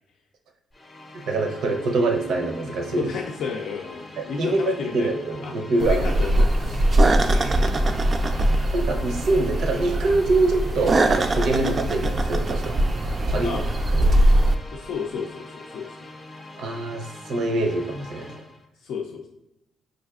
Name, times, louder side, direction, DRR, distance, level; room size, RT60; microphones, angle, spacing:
sound 1, 0.7-18.7, left 2 dB, 25° left, 0.6 m, -43 dB
voice 1, 1.3-3.1 4.2-6.1 8.7-12.8 13.3-13.5 13.9-14.1 16.6-18.4, right 2 dB, 75° right, 4 dB, 0.6 m, -24 dB
voice 2, 3.0-5.1 5.4-5.5 5.8-7.3 11.8-11.9 13.4-13.6 14.7-16.1 18.8-19.2, left 5 dB, 75° left, 0 dB, 0.4 m, -31 dB
sound 2, 5.8-14.6, right 1 dB, 35° right, 0.3 m, -21 dB
4.8 x 2.5 x 2.4 m, 0.88 s
cardioid pair, 90°, 0 cm